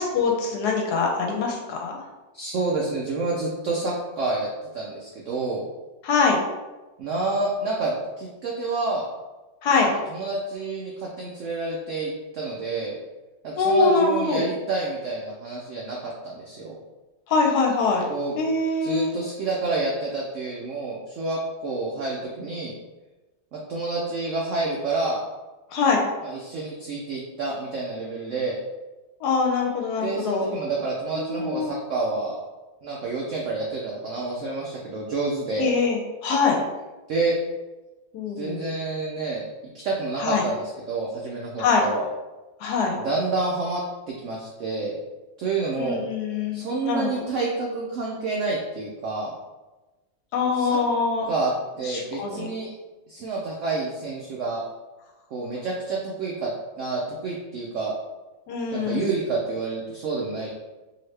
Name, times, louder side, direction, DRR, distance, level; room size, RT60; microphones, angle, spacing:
voice 1, 0.0-1.9 6.0-6.4 9.6-9.9 13.6-14.5 17.3-18.1 18.3-19.1 25.7-26.0 29.2-30.5 31.1-31.8 35.6-36.6 38.1-38.6 40.2-40.4 41.6-41.9 42.6-43.0 45.7-47.1 50.3-51.3 51.8-52.5 58.5-59.1, left 4 dB, 70° left, 1 dB, 1.0 m, -23 dB
voice 2, 2.3-4.5 4.7-5.6 7.0-9.1 10.1-12.9 13.4-16.7 18.1-18.4 18.8-22.7 23.5-25.2 26.2-28.6 30.0-32.4 32.8-35.7 37.1-37.4 38.4-39.5 39.7-42.0 43.0-43.8 44.2-45.0 45.4-46.0 46.5-49.3 50.6-50.8 51.3-51.5 51.8-52.7 53.1-54.6 55.3-56.5 56.8-58.0 58.7-60.5, right 3 dB, 85° right, -3 dB, 0.6 m, -28 dB
2.8 x 2.7 x 3.2 m, 1.1 s
omnidirectional pair, 1.9 m